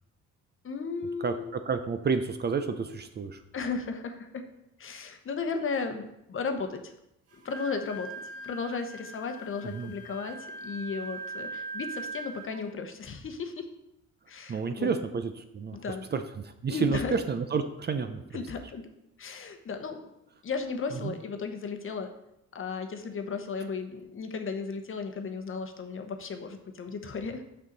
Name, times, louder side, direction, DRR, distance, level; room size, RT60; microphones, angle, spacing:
voice 1, 0.6-1.6 3.5-4.4 4.8-6.9 7.4-8.1 8.4-13.7 14.3-14.9 15.7-16.0 16.7-17.1 18.3-18.9 19.2-20.0 20.4-22.1 22.5-27.4, left 5 dB, 45° left, 6 dB, 0.9 m, -35 dB
voice 2, 1.2-3.4 9.6-9.9 14.5-15.8 16.1-18.4 20.9-21.1, right 5 dB, 35° right, 8 dB, 0.5 m, -30 dB
Wind instrument woodwind instrument, 7.3-12.6, right 3 dB, 50° right, 1.6 m, -41 dB
6.4 x 5.6 x 4.0 m, 0.83 s
cardioid pair, 90°, 30 cm